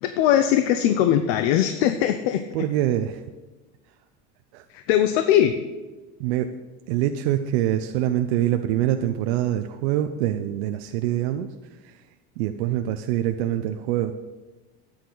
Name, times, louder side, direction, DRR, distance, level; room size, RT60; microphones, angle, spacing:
voice 1, 0.0-2.4 4.7-5.5, left 11 dB, 70° left, 9 dB, 0.7 m, -20 dB
voice 2, 2.5-3.2 4.5-4.7 6.2-6.5 6.9-12.0 12.4-14.1, right 12 dB, 80° right, 7 dB, 0.7 m, -25 dB
12.5 x 8.9 x 3.9 m, 1.2 s
supercardioid pair, 140°, 32 cm